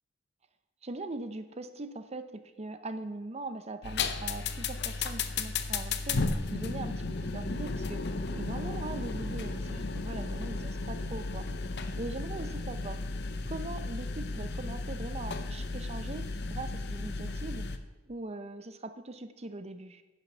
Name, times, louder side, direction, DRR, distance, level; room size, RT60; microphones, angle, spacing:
voice 1, 0.8-6.9 7.3-8.0 8.3-11.4 12.0-13.0 13.4-17.6 18.1-20.0, right 2 dB, 35° right, 10 dB, 0.7 m, -41 dB
sound 1, 3.8-17.8, left 3 dB, 60° left, 0.7 m, -34 dB
10.0 x 6.0 x 6.7 m, 1.1 s
head